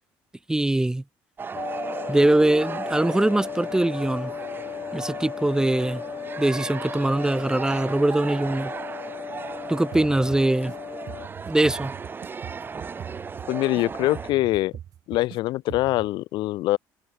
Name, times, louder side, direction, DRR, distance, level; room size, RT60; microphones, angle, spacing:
voice 1, 0.5-1.0 2.1-4.3 4.9-6.0 6.4-8.7 9.7-10.7 11.5-11.9, right 1 dB, 10° right, 4.3 m, -22 dB
sound 1, 1.4-14.3, right 5 dB, 25° right, 2.6 m, -36 dB
sound 2, 1.5-11.3, left 8 dB, 40° left, 6.1 m, -36 dB
sound 3, 9.9-10.8 11.1-13.8 14.1-15.4 15.7-16.1, right 10 dB, 50° right, 7.2 m, -41 dB
voice 2, 13.5-14.7 15.1-16.8, left 17 dB, 75° left, 2.4 m, -24 dB
cardioid pair, 120°, 8 cm